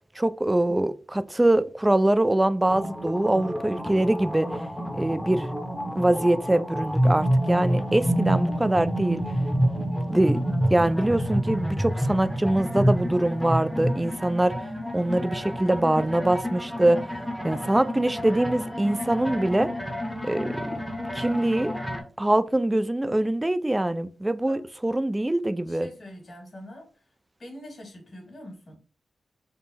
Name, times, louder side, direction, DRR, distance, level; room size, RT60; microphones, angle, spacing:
voice 1, 0.2-4.5 5.0-5.5 5.9-9.2 10.1-10.4 10.7-14.5 14.9-17.0 17.4-19.7 20.2-20.7 21.1-21.8 22.2-25.9, right 1 dB, 15° right, 0.3 m, -23 dB
sound 1, 2.7-22.0, equal, 5° left, 0.8 m, -28 dB
voice 2, 25.6-26.9 27.4-28.8, left 1 dB, 50° left, 1.7 m, -44 dB
3.6 x 2.0 x 4.1 m
cardioid pair, 70°, 0 cm